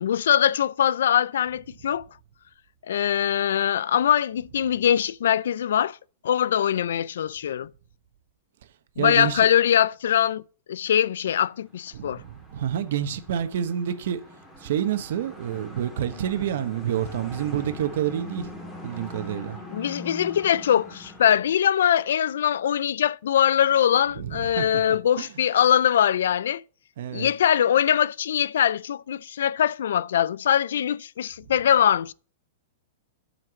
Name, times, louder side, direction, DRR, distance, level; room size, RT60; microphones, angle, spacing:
voice 1, 0.0-2.1 2.9-6.0 6.2-7.7 9.0-10.4 10.7-12.2 19.7-26.6 27.1-32.1, left 9 dB, 80° left, 0.4 m, -22 dB
voice 2, 9.0-9.5 11.9-14.2 14.6-18.5 18.8-19.6 24.2-24.7 25.2-25.3 27.0-27.3, right 10 dB, 65° right, 1.2 m, -28 dB
sound 1, 11.7-21.3, left 1 dB, 10° left, 2.1 m, -42 dB
7.9 x 5.8 x 6.9 m
supercardioid pair, 160°, 0 cm